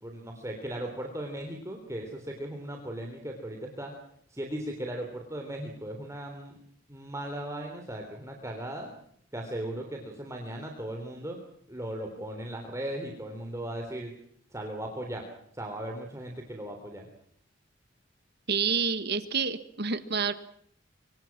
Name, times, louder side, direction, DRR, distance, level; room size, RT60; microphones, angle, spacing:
voice 1, 0.0-3.9 4.3-6.6 6.9-8.9 9.3-11.4 11.7-14.1 14.5-15.3 15.5-17.1, right 1 dB, 15° right, 2 dB, 3.5 m, -37 dB
voice 2, 18.5-20.3, right 5 dB, 50° right, 11 dB, 1.6 m, -28 dB
26.0 x 24.5 x 6.1 m, 0.67 s
head